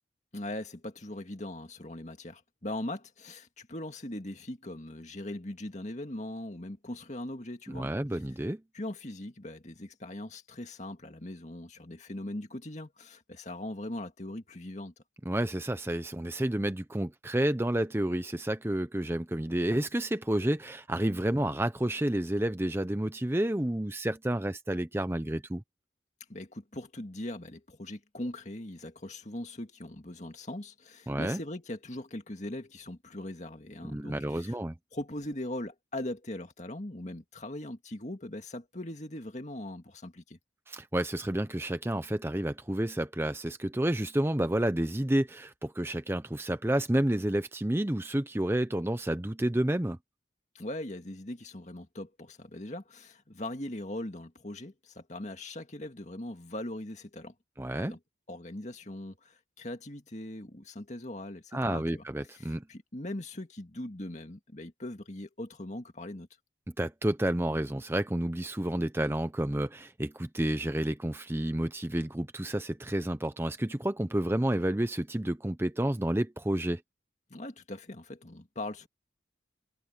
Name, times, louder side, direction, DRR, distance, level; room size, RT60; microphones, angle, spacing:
voice 1, 0.3-7.9 8.7-14.9 26.3-34.6 34.9-40.4 50.5-57.3 57.7-58.0 58.3-62.0 62.4-66.3 77.3-78.9, left 1 dB, 40° left, 2.0 m, -40 dB
voice 2, 7.7-8.6 15.3-25.6 31.1-31.4 33.8-34.7 40.7-50.0 57.6-58.0 61.5-62.6 66.8-76.8, right 1 dB, 10° right, 0.6 m, -30 dB
head